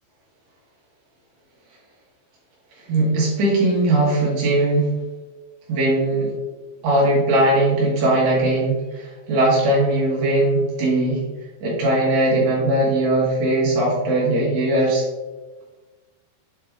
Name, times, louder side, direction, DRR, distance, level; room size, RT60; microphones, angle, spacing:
voice 1, 2.8-4.9 5.7-6.3 6.8-11.2 11.6-15.1, right 1 dB, 65° right, -5 dB, 3.6 m, -19 dB
8.4 x 3.2 x 3.5 m, 1.2 s
omnidirectional pair, 5.5 m